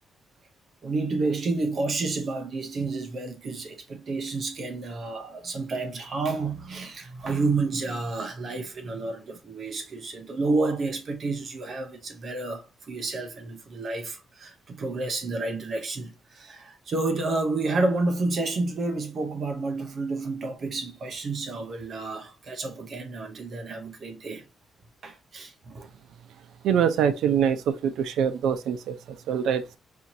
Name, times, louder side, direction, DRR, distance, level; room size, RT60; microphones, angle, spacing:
voice 1, 0.8-24.4 25.0-25.9, right 3 dB, 40° right, 0.7 m, -30 dB
voice 2, 26.6-29.8, right 8 dB, 85° right, 0.5 m, -24 dB
4.3 x 2.7 x 2.6 m
cardioid pair, 175°, 0 cm